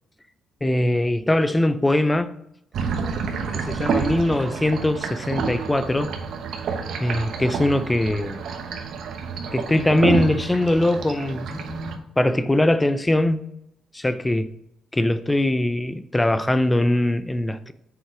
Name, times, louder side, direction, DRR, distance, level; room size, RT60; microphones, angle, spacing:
voice 1, 0.6-2.3 3.5-6.1 7.0-8.4 9.5-13.4 13.9-14.5 14.9-17.7, left 1 dB, 15° left, 0.5 m, -21 dB
sound 1, 2.7-12.0, right 5 dB, 70° right, 1.0 m, -29 dB
6.6 x 4.6 x 4.7 m
cardioid pair, 90°, 0 cm